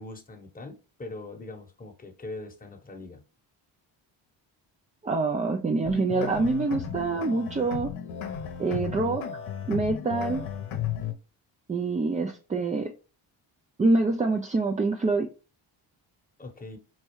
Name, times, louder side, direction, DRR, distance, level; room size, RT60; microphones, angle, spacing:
voice 1, 0.0-3.2 16.4-16.8, left 2 dB, 15° left, 0.9 m, -41 dB
voice 2, 5.0-7.9 8.6-9.2 9.7-10.5 11.7-12.9 13.8-15.3, right 3 dB, 15° right, 0.3 m, -26 dB
sound 1, 5.8-11.1, left 8 dB, 70° left, 0.8 m, -34 dB
4.3 x 2.3 x 3.1 m
supercardioid pair, 50°, 50 cm